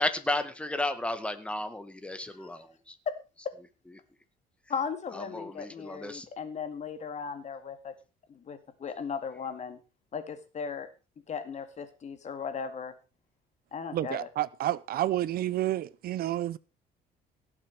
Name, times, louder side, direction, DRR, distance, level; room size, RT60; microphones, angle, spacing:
voice 1, 0.0-2.9 5.3-6.2, left 2 dB, 5° left, 1.8 m, -33 dB
voice 2, 4.7-7.9 8.3-9.8 10.1-10.9 11.3-12.9 13.7-14.3, left 6 dB, 45° left, 2.4 m, -37 dB
voice 3, 13.9-16.6, right 13 dB, 65° right, 0.7 m, -30 dB
17.5 x 7.3 x 4.8 m
cardioid pair, 110°, 17 cm